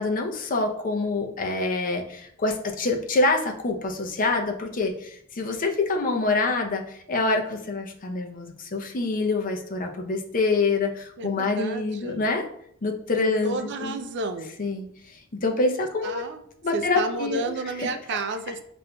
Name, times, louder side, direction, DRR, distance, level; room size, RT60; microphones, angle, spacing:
voice 1, 0.0-6.8 7.1-12.5 12.8-13.9 14.6-14.9 15.4-16.2 16.6-17.4 17.8-17.9, left 3 dB, 40° left, 3 dB, 0.6 m, -26 dB
voice 2, 11.2-12.3 13.2-14.5 16.0-16.4 16.7-18.6, right 3 dB, 55° right, 7 dB, 0.4 m, -31 dB
7.4 x 2.5 x 2.2 m, 0.69 s
head